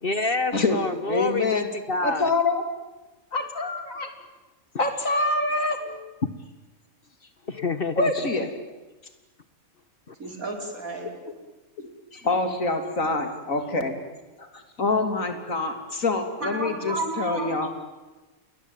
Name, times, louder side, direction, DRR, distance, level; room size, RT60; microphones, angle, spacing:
voice 1, 0.0-2.3 6.2-6.3 7.5-8.5 10.1-10.2, left 3 dB, 40° left, 12 dB, 1.4 m, -28 dB
voice 2, 1.1-1.7 2.0-2.6 3.3-4.1 4.8-6.1 7.6-7.7 8.0-8.5 12.1-14.0 14.4-17.7, left 3 dB, 65° left, 7 dB, 3.6 m, -26 dB
voice 3, 10.2-11.1 16.4-17.7, right 2 dB, 70° right, 3 dB, 5.5 m, -32 dB
28.5 x 21.0 x 9.2 m, 1.2 s
omnidirectional pair, 1.5 m